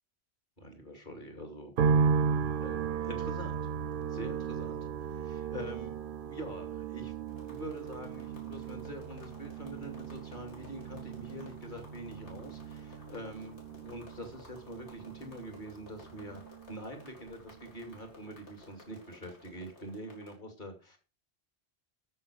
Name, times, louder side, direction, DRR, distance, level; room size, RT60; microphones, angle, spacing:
voice 1, 0.6-1.9 2.6-3.7 4.1-6.0 6.3-7.1 7.4-16.4 16.7-21.0, equal, 45° left, 5 dB, 2.8 m, -45 dB
sound 1, 1.8-17.0 17.3-18.1, right 6 dB, 60° right, 0.8 m, -35 dB
sound 2, 7.3-20.4, left 3 dB, 85° left, 3.9 m, -56 dB
13.0 x 5.7 x 5.0 m, 0.32 s
omnidirectional pair, 1.1 m